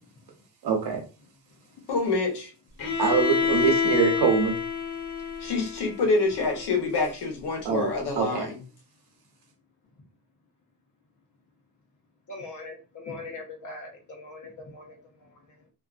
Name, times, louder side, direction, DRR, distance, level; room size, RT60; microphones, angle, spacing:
voice 1, 0.6-1.0 3.0-4.6 7.6-7.9 8.2-8.5, right 6 dB, 75° right, 0.9 m, -24 dB
voice 2, 1.9-2.5 5.4-8.6, left 3 dB, 85° left, 1.0 m, -26 dB
Bowed string instrument, 2.8-6.7, left 6 dB, 70° left, 1.3 m, -28 dB
voice 3, 12.3-15.6, left 3 dB, 50° left, 1.0 m, -41 dB
2.6 x 2.4 x 2.3 m
cardioid pair, 135°, 39 cm